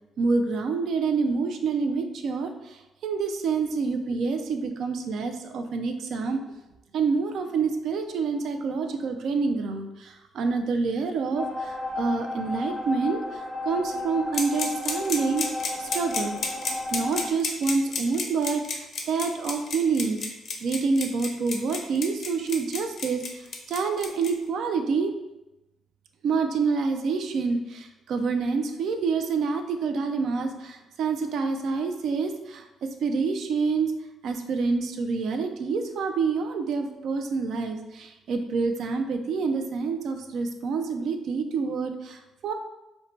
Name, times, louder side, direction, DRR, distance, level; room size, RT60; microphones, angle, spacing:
voice 1, 0.2-6.4 6.9-15.4 15.8-16.5 16.9-20.2 20.6-25.1 26.2-33.9 34.2-42.5, right 4 dB, 70° right, 5 dB, 0.3 m, -27 dB
sound 1, 11.3-17.3, left 2 dB, 5° left, 0.5 m, -33 dB
sound 2, 14.3-24.3, left 4 dB, 60° left, 0.4 m, -31 dB
2.6 x 2.1 x 3.1 m, 0.97 s
cardioid pair, 90°, 0 cm